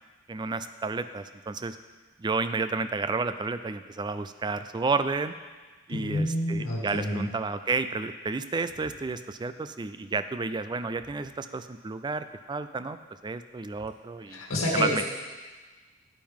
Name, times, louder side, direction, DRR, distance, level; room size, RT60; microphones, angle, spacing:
voice 1, 0.3-1.8 2.2-5.3 5.9-13.0 13.2-14.4 14.7-15.0, right 4 dB, 20° right, 11 dB, 0.3 m, -31 dB
voice 2, 5.9-7.3 14.3-15.0, left 1 dB, 80° left, -3 dB, 2.1 m, -28 dB
9.2 x 9.1 x 3.6 m, 1.3 s
head